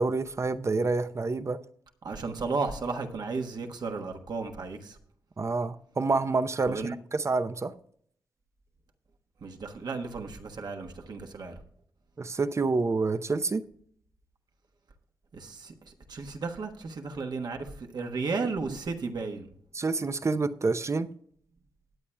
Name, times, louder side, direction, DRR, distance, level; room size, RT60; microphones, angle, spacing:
voice 1, 0.0-1.6 5.4-7.7 12.2-13.6 19.7-21.1, right 3 dB, 35° right, 0.7 m, -28 dB
voice 2, 2.0-5.0 6.7-6.9 9.4-11.6 15.3-19.5, right 4 dB, 60° right, 1.3 m, -34 dB
20.0 x 8.4 x 2.3 m
cardioid pair, 55°, 8 cm